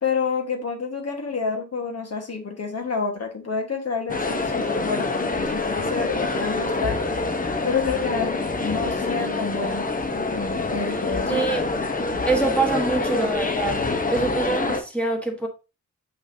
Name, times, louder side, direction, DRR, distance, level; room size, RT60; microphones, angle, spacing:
voice 1, 0.0-7.0 7.6-9.9 10.3-11.5, left 5 dB, 55° left, 1.4 m, -28 dB
sound 1, 4.1-14.8, left 3 dB, 25° left, 0.9 m, -26 dB
voice 2, 11.3-11.6 12.2-13.8 14.1-15.5, right 3 dB, 5° left, 1.3 m, -24 dB
6.4 x 5.8 x 2.7 m
wide cardioid pair, 110°, 31 cm